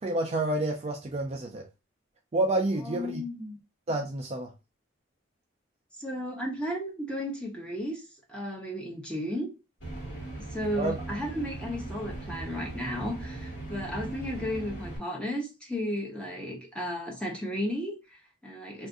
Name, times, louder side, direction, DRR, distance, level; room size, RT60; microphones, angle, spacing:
voice 1, 0.0-1.6 2.3-3.2 3.9-4.5 10.7-11.0, right 2 dB, 30° right, 0.4 m, -29 dB
voice 2, 2.8-3.6 6.0-9.5 10.4-18.9, equal, 5° left, 0.8 m, -34 dB
sound 1, 9.8-15.0, right 2 dB, 60° left, 1.5 m, -39 dB
2.5 x 2.5 x 3.6 m
head